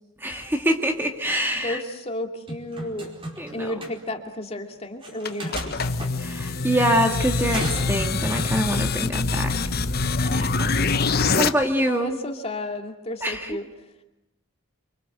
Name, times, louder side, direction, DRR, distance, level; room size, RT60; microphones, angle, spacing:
voice 1, 0.2-1.8 3.4-3.7 6.2-9.5 10.3-10.7 11.4-12.2 13.2-13.6, equal, 10° right, 4 dB, 1.9 m, -25 dB
voice 2, 1.6-3.1 3.5-5.8 9.3-10.2 11.9-13.7, left 1 dB, 30° left, 4 dB, 2.6 m, -33 dB
sound 1, 2.5-3.5 3.8-3.9 5.0-6.1 7.5-8.5, right 1 dB, 25° right, 4.9 m, -34 dB
sound 2, 5.3-11.5, left 4 dB, 45° left, 1.1 m, -24 dB
29.0 x 25.0 x 8.0 m, 0.90 s
head